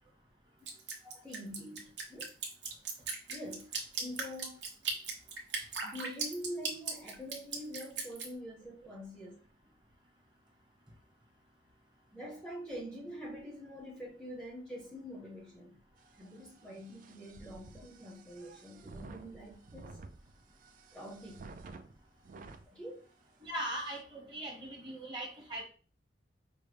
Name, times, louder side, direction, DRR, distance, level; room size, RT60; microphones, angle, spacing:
Drip, 0.7-8.3, right 4 dB, 75° right, 0.9 m, -37 dB
voice 1, 1.0-2.3 3.3-3.7 4.0-4.6 5.8-9.3 12.1-15.8 16.2-20.0 20.9-21.4 22.7-23.1, equal, 5° left, 0.6 m, -45 dB
sound 1, 16.0-22.7 23.2-23.3 23.6-24.0, right 3 dB, 50° right, 0.4 m, -52 dB
voice 2, 23.4-25.6, right 1 dB, 25° right, 1.1 m, -40 dB
5.1 x 2.1 x 3.3 m
head